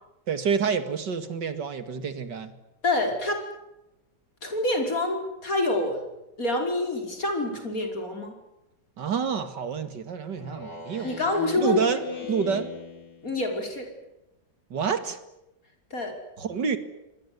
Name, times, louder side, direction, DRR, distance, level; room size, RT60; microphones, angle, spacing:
voice 1, 0.3-2.5 9.0-11.2 11.6-12.0 12.3-12.7 14.7-15.2 16.4-16.8, right 6 dB, 75° right, 11 dB, 2.8 m, -28 dB
voice 2, 2.8-3.4 4.4-6.1 6.4-8.3 11.0-11.8 13.2-13.9 15.9-16.1, left 2 dB, 50° left, 4 dB, 6.0 m, -27 dB
Speech synthesizer, 10.4-13.4, left 5 dB, 70° left, 6.1 m, -37 dB
26.0 x 21.0 x 9.7 m, 0.91 s
omnidirectional pair, 1.9 m